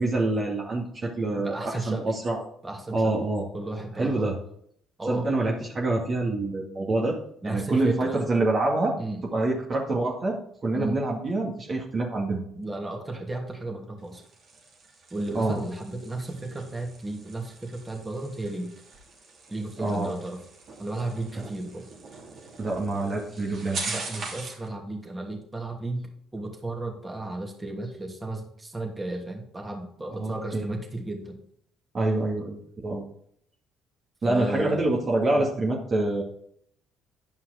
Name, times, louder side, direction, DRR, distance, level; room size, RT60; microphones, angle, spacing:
voice 1, 0.0-2.4 2.9-3.5 4.0-4.4 5.1-7.2 7.4-8.9 9.3-10.4 10.6-12.4 15.3-15.6 19.8-20.1 21.4-21.5 22.6-23.8 30.1-30.7 31.9-33.0 34.2-36.2, right 2 dB, 40° right, -2 dB, 2.1 m, -26 dB
voice 2, 1.4-2.1 2.6-3.1 3.5-4.3 5.0-5.3 7.4-8.2 9.0-9.2 10.7-11.0 12.5-14.2 15.1-18.7 19.5-20.4 20.8-21.9 23.9-31.4 34.2-34.8 35.4-35.5, right 2 dB, 20° right, 2 dB, 2.6 m, -34 dB
sound 1, 14.0-24.7, right 3 dB, 60° right, 2.8 m, -42 dB
10.0 x 5.6 x 5.0 m, 0.67 s
hypercardioid pair, 55°, 0 cm